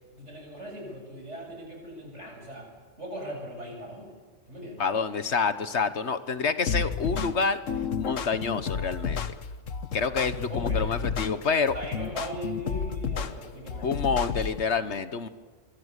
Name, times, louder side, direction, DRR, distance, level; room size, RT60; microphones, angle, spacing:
voice 1, 0.1-2.7 3.0-4.1 4.5-4.8 10.5-10.9 11.7-14.0, equal, 65° right, 1 dB, 8.1 m, -39 dB
voice 2, 4.8-7.6 8.0-9.3 9.9-11.7 13.8-15.3, left 5 dB, 60° left, 12 dB, 1.4 m, -28 dB
sound 1, 6.7-14.6, left 6 dB, 90° left, 1.5 m, -31 dB
25.0 x 24.5 x 8.3 m, 1.4 s
omnidirectional pair, 1.3 m